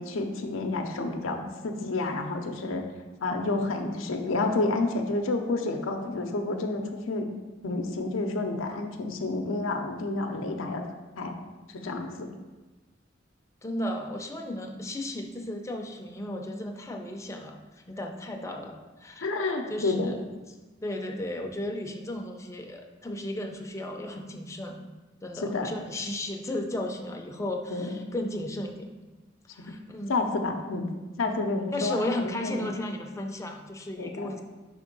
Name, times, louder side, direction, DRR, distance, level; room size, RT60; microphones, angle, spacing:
voice 1, 0.0-2.9 3.2-7.3 7.6-10.8 11.2-11.4 11.7-12.3 19.2-20.2 25.4-25.7 27.7-28.0 29.6-29.7 30.1-30.9 31.2-32.7 34.0-34.4, left 2 dB, 85° left, 4 dB, 0.6 m, -30 dB
voice 2, 13.6-19.3 19.7-20.2 20.8-24.9 25.2-29.0 29.5-30.1 31.2-31.4 31.7-34.4, left 1 dB, 15° left, 2 dB, 0.5 m, -35 dB
5.0 x 3.6 x 5.3 m, 1.2 s
head